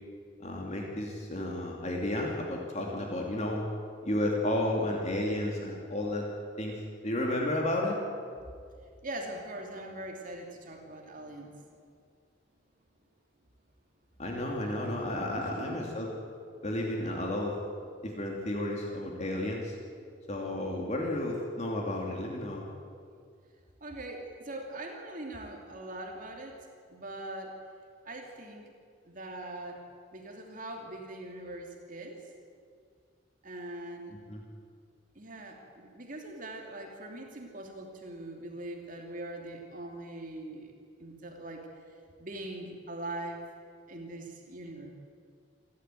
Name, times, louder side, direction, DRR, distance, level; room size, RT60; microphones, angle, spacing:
voice 1, 0.4-3.7 4.0-6.3 6.6-8.0 14.2-16.1 16.6-17.6 18.0-19.8 20.3-22.7 34.3-34.4, left 1 dB, 35° left, -1 dB, 2.7 m, -32 dB
voice 2, 9.0-11.5 15.4-15.8 20.4-20.6 23.8-26.6 26.9-27.5 28.0-28.7 29.0-29.8 30.1-32.2 33.4-34.1 35.1-40.7 41.0-41.7 42.2-43.4 43.9-44.9, right 1 dB, 45° right, 2 dB, 2.8 m, -42 dB
28.0 x 12.5 x 9.2 m, 2.2 s
head